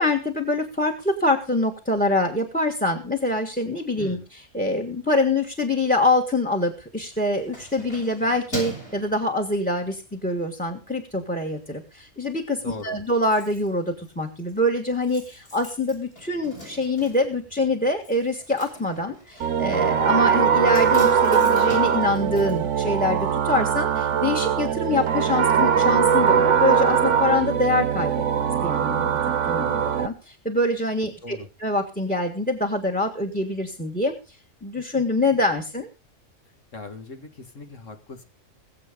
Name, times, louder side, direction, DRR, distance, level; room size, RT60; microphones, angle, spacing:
voice 1, 0.0-29.1 29.4-34.4 34.6-35.9, left 2 dB, 5° left, 7 dB, 1.6 m, -25 dB
voice 2, 4.0-4.3 12.6-13.0 31.2-31.5 36.7-38.2, left 3 dB, 70° left, 5 dB, 2.2 m, -39 dB
Keys jangling, 6.9-10.0 10.5-10.7 11.0-11.7 12.0-12.1 12.3-12.4 12.6-23.5 23.7-23.8, right 1 dB, 45° left, 7.9 m, -42 dB
sound 1, 19.4-30.1, right 7 dB, 70° right, 1.2 m, -21 dB
21.0 x 7.8 x 5.2 m, 0.32 s
omnidirectional pair, 1.4 m